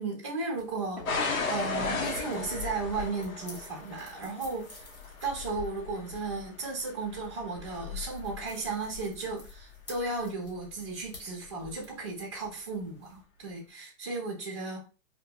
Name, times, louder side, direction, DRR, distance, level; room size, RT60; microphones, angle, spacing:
voice 1, 0.0-4.8 5.2-14.9, right 3 dB, 20° right, -4 dB, 0.5 m, -35 dB
sound 1, 0.5-13.2, left 2 dB, 30° left, 0.7 m, -53 dB
sound 2, 1.1-9.9 10.6-11.0 11.6-11.7, left 4 dB, 75° left, 0.8 m, -36 dB
2.6 x 2.0 x 3.5 m, 0.33 s
hypercardioid pair, 175°, 42 cm